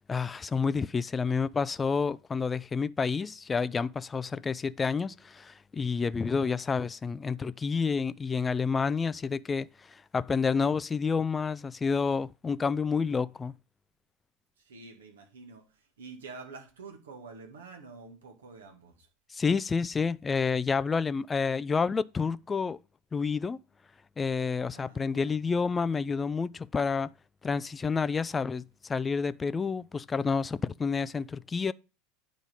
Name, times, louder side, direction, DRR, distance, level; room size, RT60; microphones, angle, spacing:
voice 1, 0.1-13.5 19.3-22.8 23.1-23.6 24.2-27.1 27.4-31.7, left 5 dB, 20° left, 0.4 m, -29 dB
voice 2, 6.2-6.6 14.6-19.1 24.7-25.3, right 4 dB, 70° right, 2.1 m, -48 dB
9.4 x 5.1 x 5.2 m
figure-of-eight pair, 80°, 0 cm